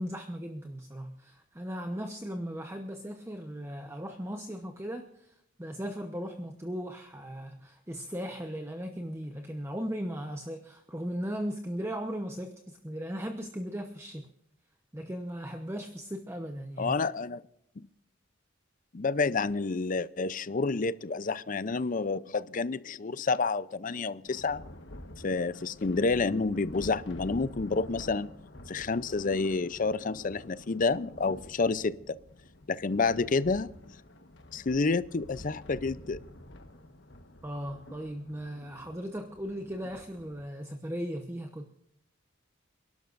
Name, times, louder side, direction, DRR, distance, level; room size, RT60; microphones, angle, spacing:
voice 1, 0.0-14.3 14.9-16.9 37.4-41.7, equal, 15° right, 0.9 m, -37 dB
voice 2, 16.8-17.4 17.8-17.9 18.9-24.6 25.2-28.4 28.7-32.2 32.7-33.7 34.5-36.2, left 4 dB, 40° left, 0.5 m, -29 dB
Thunder, 24.3-40.5, left 1 dB, 65° left, 1.3 m, -49 dB
28.5 x 12.0 x 2.6 m
head